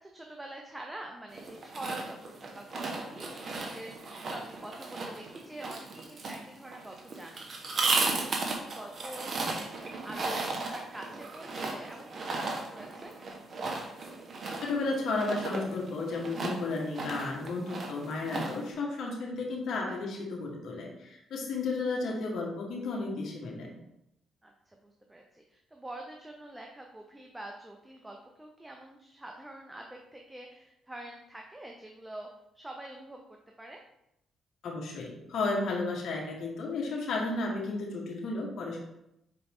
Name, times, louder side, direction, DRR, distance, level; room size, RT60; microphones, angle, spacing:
voice 1, 0.0-7.5 7.8-9.8 10.0-13.1 19.8-20.1 24.4-24.5 24.8-32.3 32.5-33.8, right 1 dB, 10° right, 1 dB, 0.8 m, -45 dB
sound 1, 1.3-18.7, right 3 dB, 45° right, 1.3 m, -35 dB
voice 2, 14.6-23.7 34.6-38.8, left 3 dB, 70° left, -2 dB, 1.6 m, -33 dB
6.0 x 4.6 x 3.7 m, 0.82 s
cardioid pair, 90°, 0 cm